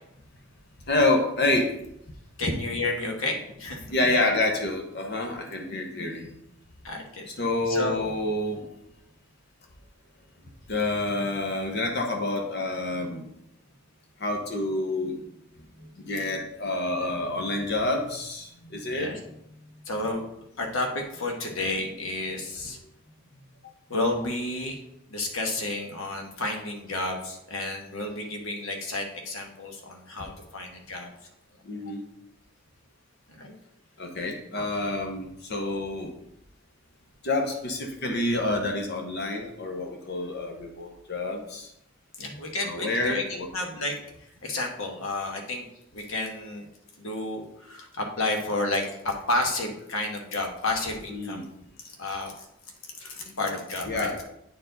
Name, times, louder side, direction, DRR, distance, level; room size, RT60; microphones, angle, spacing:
voice 1, 0.9-1.7 3.9-6.3 7.3-8.7 10.7-13.2 14.2-15.2 16.0-19.1 31.7-32.0 34.0-36.1 37.2-41.7 42.6-43.5 51.1-51.4 53.9-54.2, left 2 dB, 50° left, 3 dB, 0.8 m, -28 dB
voice 2, 2.4-3.9 6.8-7.3 7.7-8.0 18.9-19.2 19.8-20.2 20.6-22.8 23.6-24.8 25.1-31.1 31.8-31.9 33.3-33.5 34.5-34.6 42.2-43.9 44.4-45.6 45.9-46.7 47.0-51.5 51.8-52.4 53.0-54.1, left 2 dB, 70° left, 2 dB, 1.3 m, -31 dB
8.6 x 4.6 x 3.9 m, 0.79 s
head